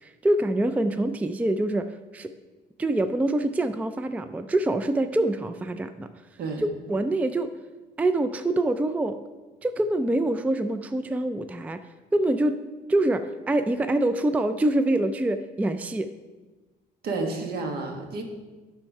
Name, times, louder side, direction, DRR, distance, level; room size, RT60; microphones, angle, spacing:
voice 1, 0.0-2.3 2.8-6.1 6.6-7.5 8.0-9.2 9.6-11.8 12.1-12.6 12.9-16.1, right 1 dB, 10° right, 10 dB, 0.4 m, -25 dB
voice 2, 17.0-18.2, right 3 dB, 65° right, 3 dB, 1.5 m, -30 dB
11.0 x 4.4 x 5.4 m, 1.3 s
cardioid pair, 110°, 17 cm